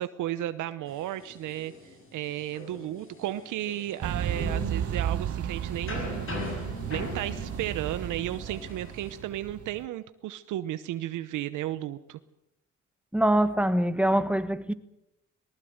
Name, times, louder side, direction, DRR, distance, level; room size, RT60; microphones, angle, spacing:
voice 1, 0.0-6.3 6.9-12.2, right 13 dB, 85° right, 0.9 m, -34 dB
sound 1, 0.9-9.2, left 2 dB, 45° left, 7.9 m, -41 dB
sound 2, 4.0-9.9, right 10 dB, 50° right, 1.0 m, -33 dB
voice 2, 13.1-14.7, right 1 dB, 5° right, 1.3 m, -24 dB
20.0 x 19.5 x 7.9 m
cardioid pair, 90°, 30 cm